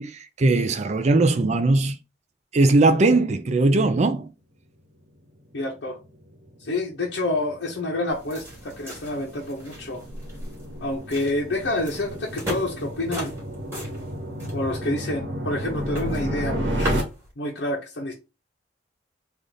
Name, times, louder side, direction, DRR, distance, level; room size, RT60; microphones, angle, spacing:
voice 1, 0.0-2.0 2.5-4.3, right 2 dB, 40° right, 0.4 m, -19 dB
voice 2, 5.5-6.0 6.6-10.0 10.8-13.3 14.5-17.0 17.4-18.1, left 2 dB, 80° left, 0.8 m, -28 dB
sound 1, 5.9-17.0, equal, 90° right, 1.1 m, -32 dB
sound 2, 8.1-17.3, equal, 15° right, 1.7 m, -38 dB
3.5 x 2.5 x 3.8 m
head